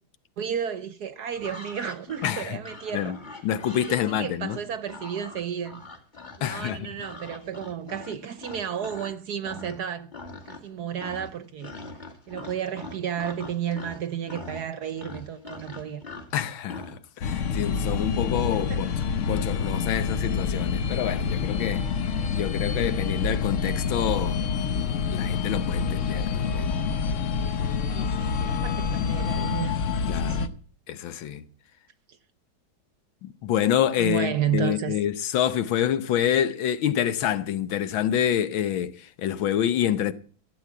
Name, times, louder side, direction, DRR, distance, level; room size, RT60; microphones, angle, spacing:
voice 1, 0.4-3.2 3.9-5.8 6.4-10.1 10.5-11.7 12.3-16.0 18.5-18.9 27.9-29.8 30.1-30.6 34.0-35.0, right 9 dB, 60° right, 1.2 m, -32 dB
sound 1, 1.3-9.1 9.4-9.9 10.1-10.7 11.0-17.0, left 2 dB, 25° left, 2.0 m, -42 dB
voice 2, 2.2-2.6 2.9-3.2 3.4-4.6 6.4-6.9 16.3-18.9 19.2-21.8 22.3-26.7 30.1-30.4 30.9-31.4 33.2-40.1, left 10 dB, 75° left, 1.6 m, -27 dB
sound 2, 17.2-30.5, left 5 dB, 55° left, 0.9 m, -27 dB
15.0 x 8.3 x 8.4 m
omnidirectional pair, 2.3 m